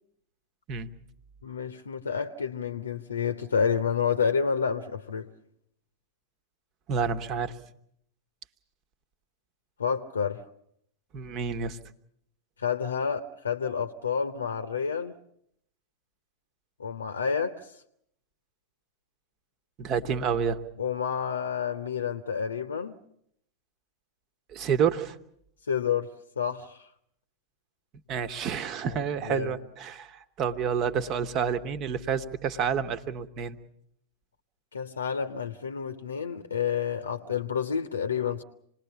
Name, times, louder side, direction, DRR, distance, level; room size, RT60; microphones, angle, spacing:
voice 1, 1.4-5.3 9.8-10.4 12.6-15.1 16.8-17.7 20.8-22.9 25.7-26.9 28.9-29.5 34.7-38.4, left 6 dB, 70° left, 0.9 m, -29 dB
voice 2, 6.9-7.5 11.1-11.8 19.8-20.6 24.5-25.1 28.1-33.6, right 7 dB, 35° right, 1.2 m, -29 dB
27.0 x 20.0 x 7.0 m
figure-of-eight pair, 90°, 0 cm